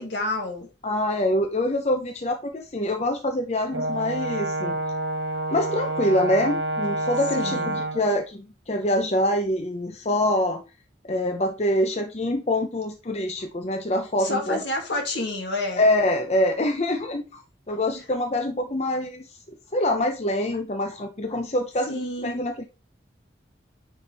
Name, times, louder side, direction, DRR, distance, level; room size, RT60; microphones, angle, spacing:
voice 1, 0.0-0.7 7.4-7.8 14.2-15.8 17.9-18.0 21.9-22.4, left 2 dB, 75° left, 2.4 m, -29 dB
voice 2, 0.8-4.8 5.5-10.6 11.1-14.6 15.8-17.4 17.7-22.6, left 1 dB, 35° left, 0.7 m, -25 dB
Brass instrument, 3.7-8.1, right 1 dB, 70° right, 0.8 m, -28 dB
9.9 x 4.5 x 3.4 m
head